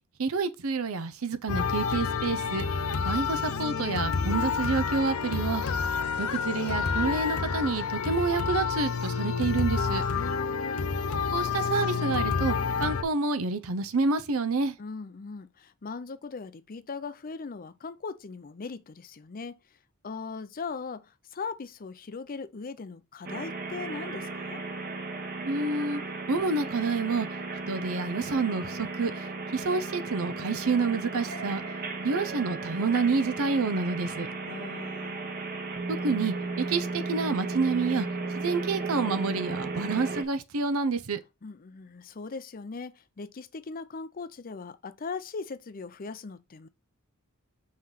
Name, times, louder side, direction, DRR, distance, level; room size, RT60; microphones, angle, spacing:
voice 1, 0.2-2.6 3.0-5.6 6.2-10.0 11.3-14.7 25.4-26.0 26.3-27.3 27.7-29.1 29.5-31.6 32.0-34.3 36.0-38.1 38.4-41.2, right 4 dB, 75° right, 0.7 m, -28 dB
sound 1, 1.5-13.0, left 5 dB, 85° left, 0.8 m, -29 dB
voice 2, 10.2-10.8 14.8-19.6 20.0-24.6 34.5-35.2 41.4-46.7, left 4 dB, 40° left, 0.5 m, -39 dB
sound 2, 23.2-40.2, right 3 dB, 45° right, 1.3 m, -35 dB
5.7 x 3.2 x 5.7 m
head